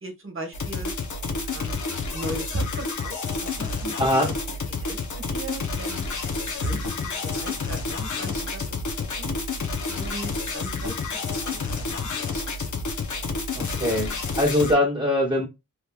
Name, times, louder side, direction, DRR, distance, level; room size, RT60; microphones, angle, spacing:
voice 1, 0.0-0.9 1.4-4.3 4.7-6.0 6.5-9.3 9.9-12.1, right 1 dB, 40° right, 1.1 m, -37 dB
sound 1, 0.5-14.7, left 4 dB, 60° left, 0.8 m, -29 dB
voice 2, 4.0-4.3 13.5-15.4, left 1 dB, 15° right, 1.4 m, -22 dB
3.4 x 3.1 x 2.2 m
wide cardioid pair, 130°, 34 cm